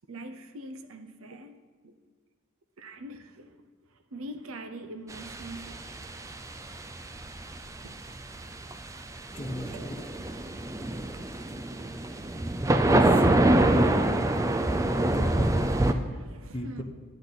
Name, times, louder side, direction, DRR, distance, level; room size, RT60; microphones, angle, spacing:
voice 1, 0.1-1.9 2.8-3.6 4.1-6.2 7.8-7.9 9.7-10.1 15.5-15.6 16.1-16.8, right 1 dB, 85° right, 9 dB, 0.7 m, -43 dB
sound 1, 5.1-15.9, right 1 dB, 15° right, 0.4 m, -26 dB
voice 2, 9.3-9.9 12.9-13.3 15.1-15.7 16.5-16.8, left 1 dB, 25° left, 2 dB, 0.9 m, -34 dB
10.5 x 8.7 x 4.0 m, 1.5 s
head